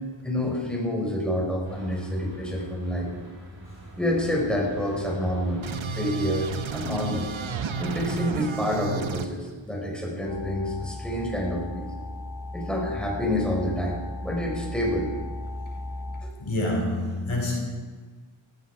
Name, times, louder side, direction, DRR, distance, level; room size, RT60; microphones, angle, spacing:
voice 1, 0.2-3.1 4.0-5.7 5.9-7.3 7.8-11.9 12.5-15.1 16.2-16.3, left 1 dB, ahead, -1 dB, 4.9 m, -28 dB
sound 1, 1.6-8.7, equal, 50° right, 6.1 m, -44 dB
sound 2, 5.6-9.3, right 5 dB, 75° right, 1.0 m, -32 dB
sound 3, 10.3-16.2, left 2 dB, 15° right, 5.9 m, -36 dB
voice 2, 16.4-17.5, left 1 dB, 80° left, -1 dB, 4.5 m, -27 dB
18.0 x 15.0 x 4.7 m, 1.4 s
wide cardioid pair, 60°, 47 cm